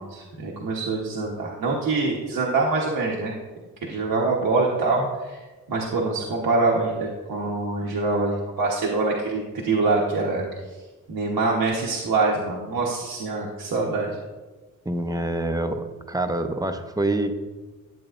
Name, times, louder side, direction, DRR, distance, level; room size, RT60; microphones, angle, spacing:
voice 1, 0.0-3.3 3.8-5.4 5.7-10.4 11.1-14.1, right 3 dB, 85° right, -3 dB, 1.2 m, -24 dB
voice 2, 14.9-17.4, right 1 dB, 10° right, 7 dB, 0.6 m, -26 dB
11.0 x 8.3 x 2.5 m, 1.2 s
wide cardioid pair, 120°, 34 cm